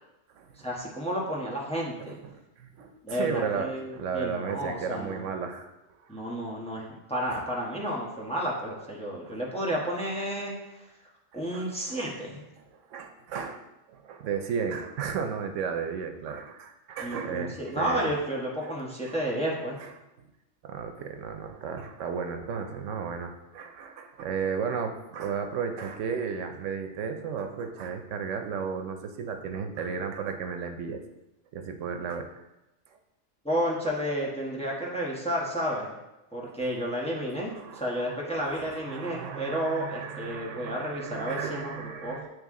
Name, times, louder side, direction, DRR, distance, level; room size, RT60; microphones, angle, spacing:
voice 1, 0.6-2.2 3.0-5.2 6.1-10.9 11.3-12.4 17.0-19.8 33.4-35.9 36.3-41.7 42.0-42.2, equal, 5° left, -4 dB, 1.0 m, -31 dB
voice 2, 2.0-5.7 6.0-6.2 7.3-7.4 9.2-9.4 11.3-12.1 12.6-12.7 12.9-13.6 13.9-18.1 18.6-18.7 19.0-19.1 19.8-19.9 20.6-31.0 31.5-32.3 37.5-42.3, right 6 dB, 85° right, 5 dB, 1.0 m, -34 dB
9.0 x 3.2 x 3.6 m, 0.97 s
omnidirectional pair, 1.2 m